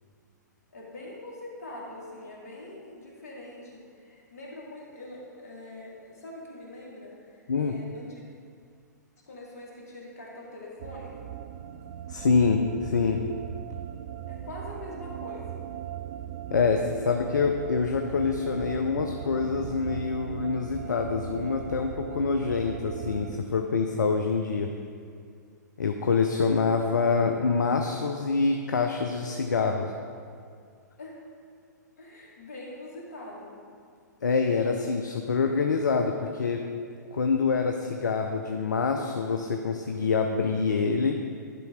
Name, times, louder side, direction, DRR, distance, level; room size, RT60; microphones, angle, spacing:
voice 1, 0.7-8.2 9.3-11.4 14.3-15.7 31.0-31.2 32.0-33.6, left 1 dB, 55° left, -3 dB, 2.2 m, -43 dB
sound 1, 10.8-23.4, right 11 dB, 45° right, 0.4 m, -39 dB
voice 2, 12.1-13.2 16.5-24.7 25.8-29.9 34.2-36.6 37.1-41.1, left 5 dB, 75° left, 4 dB, 0.5 m, -26 dB
10.5 x 4.4 x 4.9 m, 2.2 s
figure-of-eight pair, 115°, 10 cm